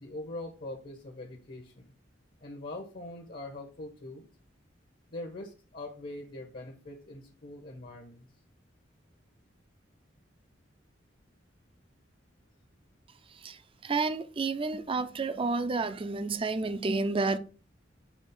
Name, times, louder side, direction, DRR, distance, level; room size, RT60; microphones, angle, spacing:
voice 1, 0.0-1.9 2.4-4.3 5.1-8.3, left 2 dB, 55° left, 1.0 m, -42 dB
voice 2, 13.8-17.4, right 3 dB, 30° right, 0.5 m, -30 dB
7.1 x 2.5 x 5.4 m
head